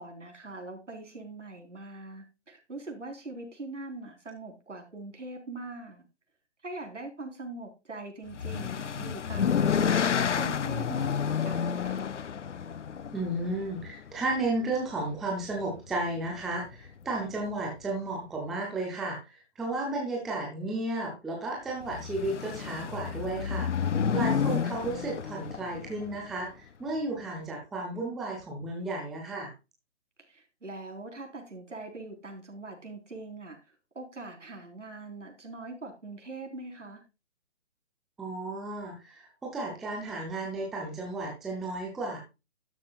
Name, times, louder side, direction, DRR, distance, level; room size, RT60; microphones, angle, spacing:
voice 1, 0.0-6.0 6.6-12.1 24.2-24.5 30.3-33.6 33.9-37.0, right 2 dB, 90° right, 3 dB, 4.1 m, -42 dB
sound 1, 8.3-14.5 15.5-15.9 16.2-16.3 16.7-16.8 21.8-26.2, left 7 dB, 80° left, 0.8 m, -30 dB
voice 2, 13.1-23.7 24.1-29.5 38.2-42.2, right 2 dB, ahead, -1 dB, 0.4 m, -33 dB
12.5 x 9.3 x 2.3 m, 0.27 s
figure-of-eight pair, 140°, 35 cm